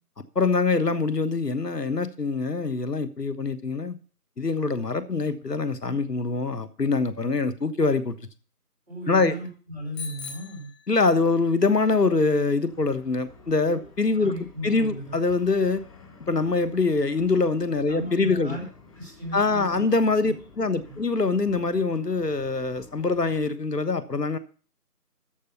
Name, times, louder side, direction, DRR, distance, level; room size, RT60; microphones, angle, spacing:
voice 1, 0.3-4.0 4.4-8.1 9.1-9.3 10.9-14.3 14.6-15.8 16.3-18.6 19.3-24.4, left 3 dB, 90° left, 1.4 m, -24 dB
voice 2, 8.9-10.7 14.1-15.2 17.9-18.6 18.9-19.8 20.2-20.3 20.8-21.0, equal, 5° right, 4.2 m, -36 dB
Bicycle bell, 9.9-11.5, left 4 dB, 60° left, 3.6 m, -41 dB
sound 1, 12.7-23.5, left 4 dB, 20° left, 3.8 m, -51 dB
13.5 x 5.0 x 6.7 m
figure-of-eight pair, 170°, 47 cm